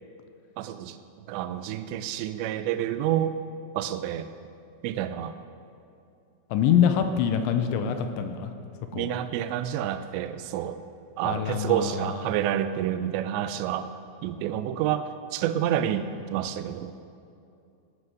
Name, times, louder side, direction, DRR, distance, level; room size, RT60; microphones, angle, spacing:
voice 1, 0.6-1.0 1.3-3.4 3.7-4.3 4.8-5.4 8.9-10.8 11.2-14.0 14.2-16.9, right 11 dB, 80° right, 11 dB, 2.8 m, -29 dB
voice 2, 6.5-8.5 8.9-9.1 11.2-12.3, left 8 dB, 80° left, 7 dB, 3.1 m, -25 dB
19.0 x 9.6 x 6.4 m, 2.6 s
omnidirectional pair, 5.4 m